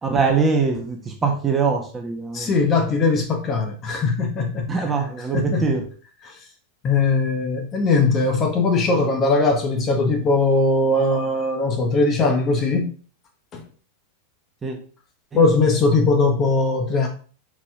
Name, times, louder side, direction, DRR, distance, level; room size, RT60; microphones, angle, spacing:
voice 1, 0.0-2.5 4.7-5.8 14.6-14.8 15.3-15.4, right 5 dB, 15° right, 1.4 m, -22 dB
voice 2, 2.3-4.8 5.3-5.7 6.2-6.3 6.8-12.9 13.5-13.6 15.3-17.1, left 3 dB, 30° left, 1.5 m, -20 dB
5.6 x 5.1 x 3.8 m
figure-of-eight pair, 90°, 0 cm